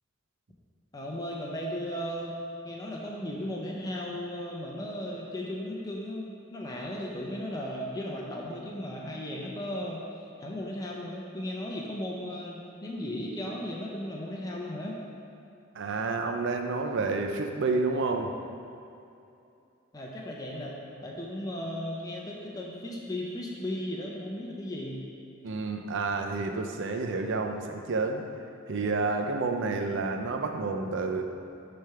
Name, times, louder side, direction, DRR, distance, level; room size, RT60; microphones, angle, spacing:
voice 1, 0.9-2.4 2.6-15.0 19.9-25.1, left 1 dB, 15° left, -3 dB, 0.6 m, -36 dB
voice 2, 15.7-18.3 25.4-28.2 28.7-31.2, right 3 dB, 55° right, 5 dB, 0.5 m, -29 dB
6.6 x 3.4 x 5.6 m, 2.7 s
head